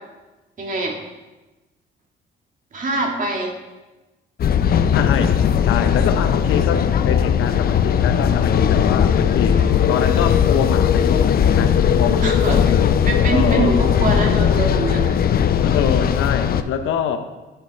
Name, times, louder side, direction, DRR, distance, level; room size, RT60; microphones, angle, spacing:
voice 1, 0.6-1.0 2.7-3.5 9.5-9.7 12.2-12.7 13.1-15.2, right 2 dB, 40° right, 1 dB, 2.0 m, -23 dB
sound 1, 4.4-16.6, left 8 dB, 50° left, 0.5 m, -18 dB
voice 2, 4.9-12.9 13.3-13.7 15.6-17.2, left 7 dB, 85° left, 8 dB, 0.8 m, -25 dB
11.0 x 6.4 x 4.2 m, 1.1 s
cardioid pair, 90°, 20 cm